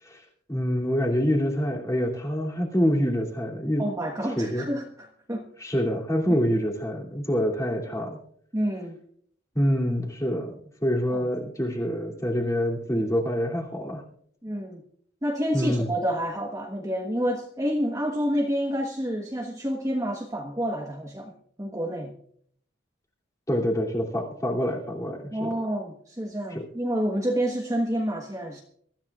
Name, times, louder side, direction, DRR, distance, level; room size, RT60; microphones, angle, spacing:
voice 1, 0.0-3.8 4.2-4.7 5.6-8.2 9.5-14.0 15.5-15.9 23.5-25.5 26.5-26.6, equal, 15° left, -1 dB, 2.8 m, -26 dB
voice 2, 3.8-5.5 8.5-9.0 11.1-11.2 14.4-14.8 15.2-21.3 21.6-22.1 25.3-28.6, equal, 15° right, 1 dB, 1.3 m, -28 dB
23.5 x 14.0 x 2.4 m, 0.63 s
head